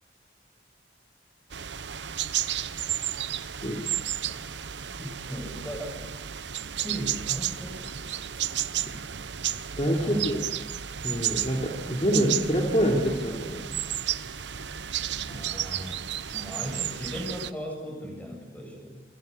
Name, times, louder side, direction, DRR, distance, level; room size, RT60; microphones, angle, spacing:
sound 1, 1.5-17.5, right 10 dB, 85° right, 0.9 m, -32 dB
voice 1, 5.0-6.0 6.6-8.0 10.0-10.5 15.2-16.0 16.3-19.0, equal, 10° left, 1 dB, 7.7 m, -37 dB
voice 2, 9.8-10.4 11.0-13.7, equal, 35° left, 0 dB, 3.2 m, -26 dB
27.0 x 24.5 x 7.0 m, 1.1 s
head